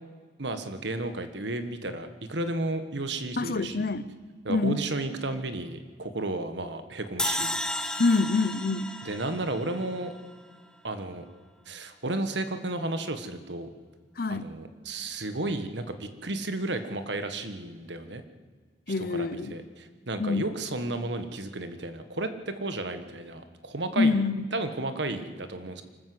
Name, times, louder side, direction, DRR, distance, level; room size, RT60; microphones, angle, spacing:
voice 1, 0.4-3.9 4.4-7.6 9.0-10.1 10.8-11.2 11.6-13.7 14.3-18.2 19.0-24.1 24.5-25.8, right 2 dB, 70° right, 9 dB, 1.6 m, -33 dB
voice 2, 3.4-4.1 4.5-4.9 8.0-8.9 14.2-14.5 18.9-19.5 20.2-20.5 24.0-24.4, left 3 dB, 55° left, 15 dB, 0.8 m, -26 dB
sound 1, 7.2-10.4, left 1 dB, 5° left, 1.0 m, -33 dB
25.0 x 14.0 x 7.9 m, 1.5 s
head